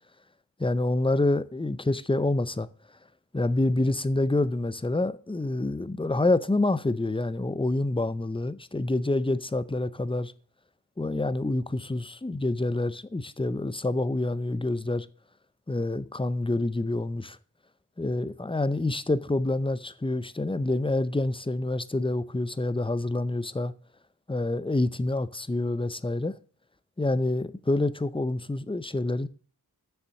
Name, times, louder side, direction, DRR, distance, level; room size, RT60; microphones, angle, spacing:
voice 1, 0.6-2.7 3.3-10.3 11.0-15.1 15.7-17.4 18.0-23.7 24.3-26.4 27.0-29.3, left 2 dB, 15° left, 0.5 m, -27 dB
7.2 x 7.0 x 6.4 m
wide cardioid pair, 40°, 39 cm